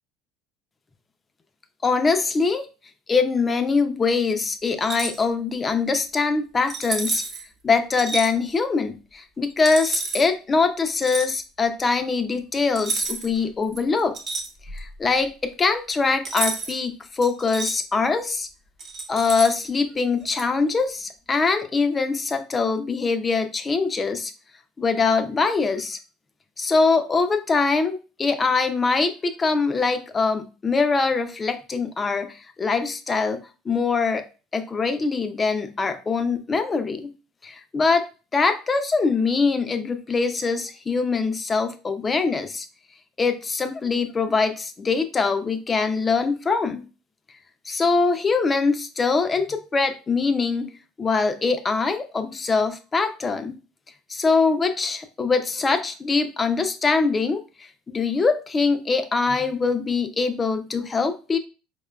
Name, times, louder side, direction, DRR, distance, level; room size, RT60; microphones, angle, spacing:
voice 1, 1.8-2.7 3.1-7.2 7.6-14.2 14.7-18.5 19.1-24.3 24.8-26.0 26.6-34.2 34.5-37.1 37.4-38.1 38.3-42.7 43.2-46.9 47.7-50.7 51.0-53.5 54.1-61.4, left 4 dB, 25° left, 8 dB, 0.5 m, -23 dB
sound 1, 4.8-5.2 6.7-7.4 8.0-8.3 9.6-10.3 11.0-11.3 12.7-13.4 13.7-14.9 16.2-16.8 17.2-17.7 18.8-19.7 20.3-20.4, right 3 dB, 50° right, 0.9 m, -30 dB
4.7 x 2.2 x 2.3 m, 0.34 s
supercardioid pair, 95°, 0 cm